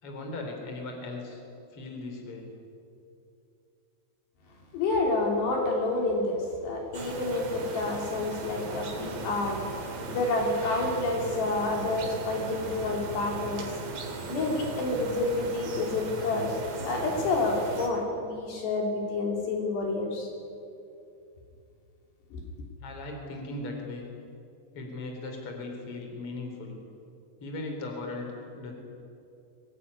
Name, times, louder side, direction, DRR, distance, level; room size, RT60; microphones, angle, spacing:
voice 1, 0.0-1.4 1.7-2.5 22.8-24.0 24.7-26.8 27.4-28.7, left 2 dB, 30° left, 2 dB, 4.4 m, -38 dB
voice 2, 4.7-6.4 6.6-9.6 10.1-13.7 14.3-20.3 22.3-22.4, left 2 dB, 65° left, 0 dB, 5.0 m, -29 dB
sound 1, 6.9-17.9, right 4 dB, 70° right, 5.2 m, -38 dB
24.0 x 19.5 x 9.9 m, 2.6 s
omnidirectional pair, 5.3 m